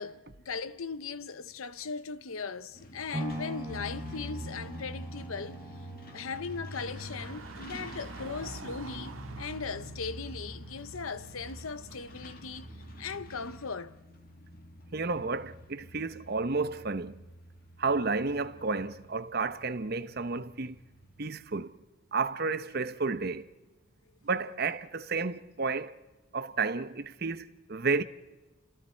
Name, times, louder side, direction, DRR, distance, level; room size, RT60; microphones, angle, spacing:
voice 1, 0.0-5.6 6.1-12.7 13.0-14.0, left 5 dB, 80° left, 0.9 m, -38 dB
Truck, 2.7-21.2, equal, 45° left, 2.4 m, -47 dB
sound 1, 3.1-11.2 11.7-11.8, equal, 10° right, 3.3 m, -44 dB
sound 2, 6.9-13.6, right 2 dB, 80° right, 1.7 m, -47 dB
voice 2, 14.9-17.2 17.8-20.8 21.2-21.8 22.1-23.5 24.2-25.9 26.3-28.0, right 4 dB, 45° right, 0.8 m, -31 dB
29.5 x 27.0 x 4.5 m
head